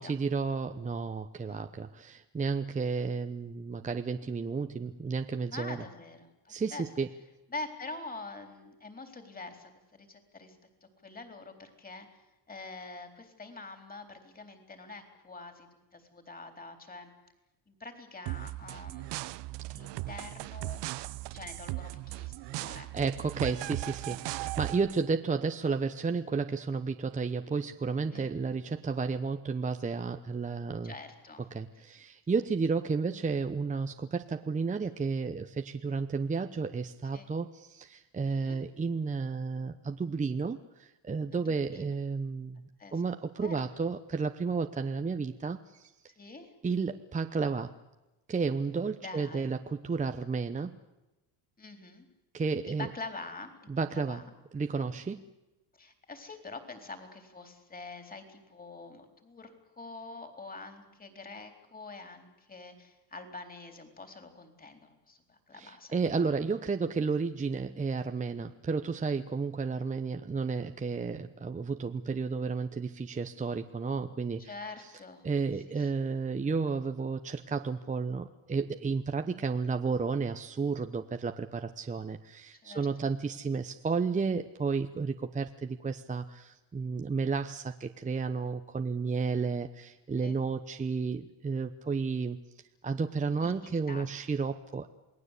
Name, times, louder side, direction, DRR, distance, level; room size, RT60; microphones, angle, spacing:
voice 1, 0.0-5.8 6.5-7.1 22.6-30.9 31.5-42.6 42.9-45.9 46.6-47.7 48.3-50.8 52.3-52.9 53.7-54.2 54.5-55.2 65.5-74.5 75.2-92.4 92.8-94.9, right 4 dB, 15° right, 7 dB, 0.9 m, -32 dB
voice 2, 5.5-6.8 7.5-12.2 12.5-17.1 17.7-20.8 21.3-22.9 28.1-28.3 30.8-31.4 37.1-37.3 38.3-38.6 41.3-42.0 42.8-42.9 43.4-43.7 46.2-46.5 49.0-49.5 51.6-52.1 52.7-54.3 55.7-65.9 69.7-69.9 74.4-75.2 75.8-75.9 82.6-83.1 90.1-90.3 93.4-94.1, left 3 dB, 20° left, 6 dB, 4.0 m, -45 dB
sound 1, 18.3-25.0, right 18 dB, 65° right, 0.9 m, -38 dB
28.0 x 19.0 x 8.4 m, 1.0 s
cardioid pair, 120°, 45 cm